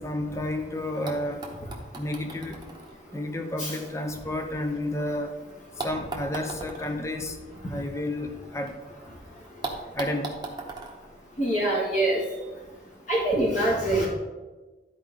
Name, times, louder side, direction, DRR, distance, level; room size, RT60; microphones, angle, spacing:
voice 1, 0.0-1.4 2.0-2.6 3.1-5.4 5.8-7.4 7.7-8.7 9.9-10.3, left 1 dB, 15° left, 5 dB, 0.6 m, -31 dB
sound 1, 1.1-5.1 5.8-8.7 9.0-9.1 9.6-12.0 13.0-13.1, right 3 dB, 25° right, 1.0 m, -40 dB
voice 2, 11.4-12.2 13.1-14.1, right 1 dB, 45° left, -5 dB, 1.9 m, -24 dB
12.0 x 4.6 x 3.7 m, 1.2 s
head